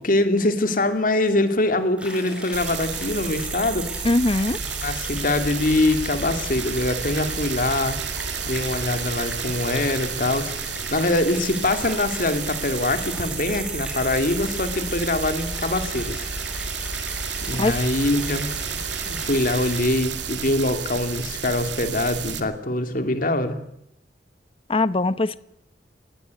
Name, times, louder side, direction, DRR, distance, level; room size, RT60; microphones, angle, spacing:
voice 1, 0.0-3.9 4.8-8.0 8.4-16.3 17.4-23.6, left 2 dB, 50° left, 8 dB, 2.6 m, -24 dB
sound 1, 2.0-19.8, equal, 5° right, 6.7 m, -37 dB
sound 2, 2.5-22.4, right 6 dB, 85° right, 2.1 m, -31 dB
voice 2, 4.0-4.6 17.6-17.9 24.7-25.4, left 2 dB, 30° left, 16 dB, 0.8 m, -21 dB
20.0 x 17.0 x 8.3 m, 0.78 s
head